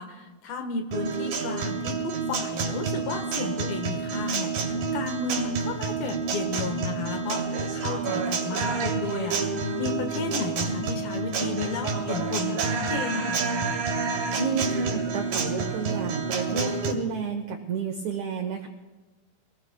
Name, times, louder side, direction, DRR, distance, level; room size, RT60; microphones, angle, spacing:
voice 1, 0.0-13.4, left 4 dB, 70° left, 5 dB, 3.0 m, -33 dB
Guitar, 0.9-16.9, right 4 dB, 65° right, 3.9 m, -29 dB
voice 2, 14.4-18.7, right 5 dB, 80° right, 5 dB, 1.6 m, -31 dB
26.0 x 20.0 x 2.2 m, 1.2 s
omnidirectional pair, 4.5 m